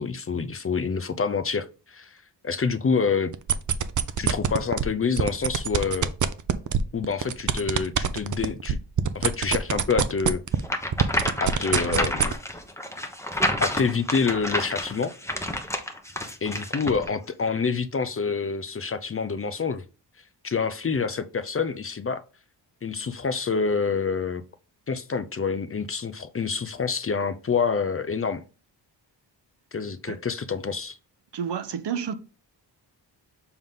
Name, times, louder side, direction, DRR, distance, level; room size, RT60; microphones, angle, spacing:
voice 1, 0.0-2.2 2.4-3.3 4.2-6.1 6.9-8.8 9.1-10.4 11.4-12.4 13.6-15.1 16.4-19.8 20.4-22.2 22.8-24.4 24.9-28.4 29.7-31.0, left 5 dB, 30° left, 0.5 m, -27 dB
sound 1, 3.3-4.8 5.2-10.7 10.9-12.3, right 8 dB, 45° right, 0.6 m, -23 dB
sound 2, 10.6-17.1, left 1 dB, 5° left, 1.0 m, -29 dB
voice 2, 31.3-32.1, right 7 dB, 70° right, 0.9 m, -30 dB
7.1 x 3.8 x 3.6 m
wide cardioid pair, 95°, 43 cm